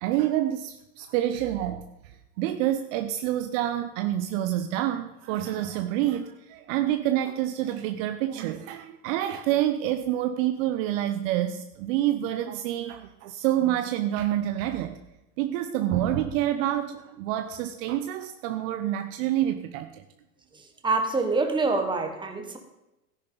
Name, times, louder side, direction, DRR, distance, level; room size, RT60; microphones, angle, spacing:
voice 1, 0.0-1.8 2.4-15.0 15.4-20.0, right 12 dB, 60° right, 8 dB, 0.9 m, -27 dB
voice 2, 20.8-22.6, right 3 dB, 10° right, 4 dB, 1.5 m, -25 dB
13.5 x 10.0 x 4.0 m, 0.94 s
hypercardioid pair, 105°, 45 cm